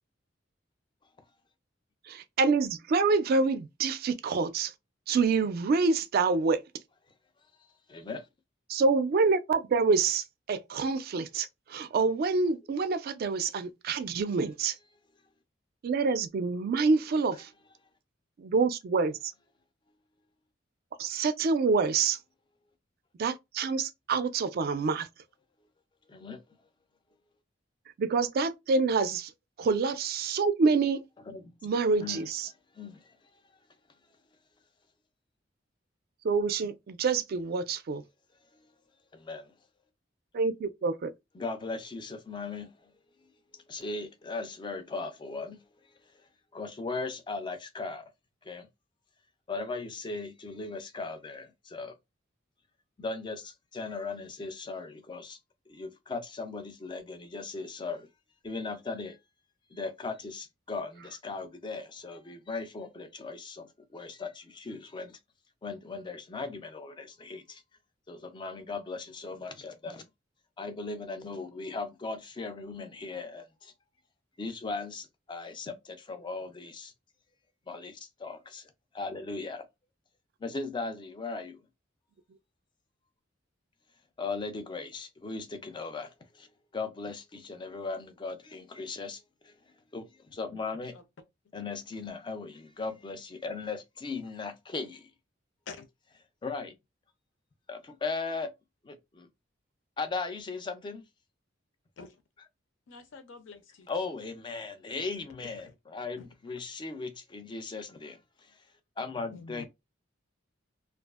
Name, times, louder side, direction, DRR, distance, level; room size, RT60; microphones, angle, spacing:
voice 1, 2.1-4.7 5.1-6.6 8.7-14.8 15.8-17.5 18.4-19.2 21.0-22.2 23.2-25.1 28.0-29.3 29.6-31.1 31.6-32.5 36.2-38.0 40.3-41.1, right 4 dB, 50° right, 0.3 m, -27 dB
voice 2, 7.9-8.3 26.1-26.4 31.3-31.5 32.0-32.2 32.7-33.1 39.1-39.5 41.3-42.9 43.5-45.6 46.5-48.1 48.4-48.7 49.5-51.9 53.0-55.4 55.7-58.1 58.4-59.2 59.7-65.2 65.6-67.6 68.1-70.0 70.6-73.7 74.4-76.9 77.7-79.7 80.4-81.6 84.2-86.5 86.7-89.6 89.9-91.0 91.5-95.1 96.4-96.7 97.7-98.5 98.8-99.3 100.0-101.0 102.4-102.5 103.9-108.2 108.5-108.6 109.0-109.7, left 3 dB, 25° left, 0.4 m, -38 dB
voice 3, 102.9-103.9 105.4-105.5 106.2-106.3 109.3-109.7, left 4 dB, 75° left, 0.5 m, -46 dB
2.5 x 2.4 x 2.3 m
head